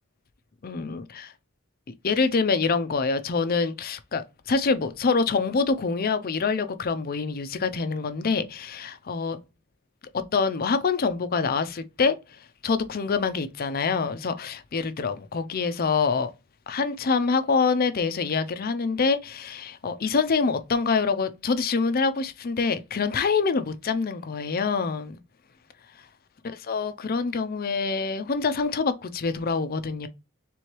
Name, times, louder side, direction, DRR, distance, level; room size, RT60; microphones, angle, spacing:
voice 1, 0.6-1.3 2.0-4.2 4.5-9.4 10.3-12.1 12.6-16.3 16.7-25.2 26.7-30.1, left 4 dB, 45° left, 0.5 m, -25 dB
3.4 x 3.2 x 4.4 m
head